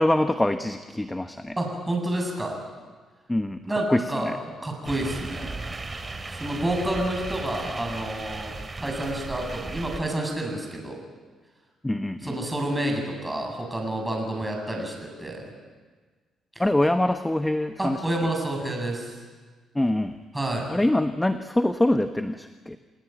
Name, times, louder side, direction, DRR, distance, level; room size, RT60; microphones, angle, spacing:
voice 1, 0.0-1.5 3.3-3.6 3.9-4.4 11.8-12.4 16.6-18.0 19.7-20.2 20.7-22.8, left 1 dB, 10° left, 8 dB, 1.1 m, -24 dB
voice 2, 1.6-2.6 3.7-5.8 6.3-8.5 8.8-11.0 12.2-15.5 16.5-16.6 17.8-19.2 20.3-20.8, right 1 dB, 10° right, 1 dB, 7.8 m, -29 dB
sound 1, 4.8-10.0, right 3 dB, 25° right, 2.8 m, -36 dB
29.0 x 18.0 x 9.3 m, 1.4 s
cardioid pair, 90°, 0 cm